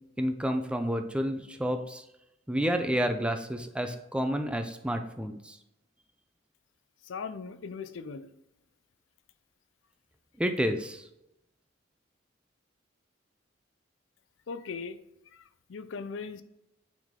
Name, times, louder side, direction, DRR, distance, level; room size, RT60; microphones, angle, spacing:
voice 1, 0.2-2.0 2.5-5.6 10.4-11.1, equal, 5° right, 6 dB, 0.5 m, -30 dB
voice 2, 7.1-8.3 14.5-15.0 15.7-16.4, left 5 dB, 75° left, 12 dB, 0.5 m, -38 dB
9.2 x 3.6 x 3.7 m, 0.86 s
head